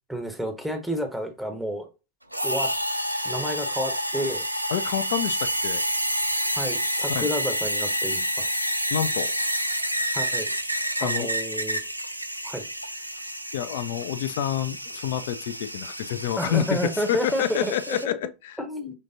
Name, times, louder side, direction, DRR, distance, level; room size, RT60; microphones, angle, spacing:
voice 1, 0.1-1.9 2.4-2.7 3.2-4.4 6.5-8.5 10.1-10.5 11.0-11.8 12.4-12.7 16.4-18.2 18.6-18.9, equal, ahead, 0.7 m, -30 dB
sound 1, 2.3-18.0, equal, 90° right, 0.4 m, -29 dB
voice 2, 4.7-5.8 6.3-6.6 7.1-7.3 8.9-9.7 11.0-11.3 13.5-18.6, left 10 dB, 55° left, 0.4 m, -28 dB
5.2 x 3.4 x 2.6 m
figure-of-eight pair, 90°, 0 cm